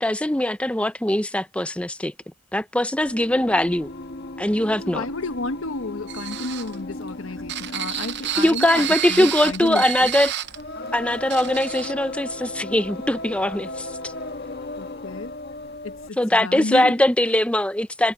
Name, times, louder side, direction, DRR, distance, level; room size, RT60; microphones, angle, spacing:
voice 1, 0.0-2.1 2.5-3.9 4.4-5.1 7.9-8.0 8.4-10.3 10.9-14.1 16.2-18.1, left 1 dB, 5° left, 0.7 m, -21 dB
Singing, 3.0-16.2, left 2 dB, 50° left, 1.6 m, -36 dB
voice 2, 4.8-10.1 14.8-15.3 15.8-16.9, left 2 dB, 80° left, 1.2 m, -31 dB
sound 1, 6.1-10.6 10.9-11.0 11.3-11.9, right 12 dB, 55° right, 0.8 m, -30 dB
head